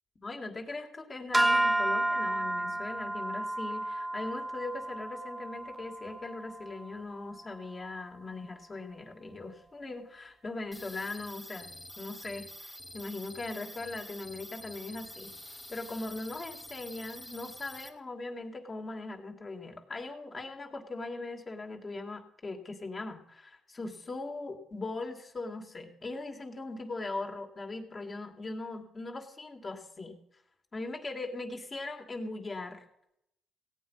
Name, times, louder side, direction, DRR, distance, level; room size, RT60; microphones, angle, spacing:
voice 1, 0.2-15.3 15.7-30.2 30.7-32.8, left 2 dB, 30° left, 4 dB, 2.4 m, -40 dB
sound 1, 1.3-7.7, right 1 dB, 15° right, 0.6 m, -32 dB
sound 2, 10.7-17.9, left 1 dB, 5° left, 1.7 m, -47 dB
16.5 x 8.9 x 5.7 m, 0.79 s
cardioid pair, 90°, 0 cm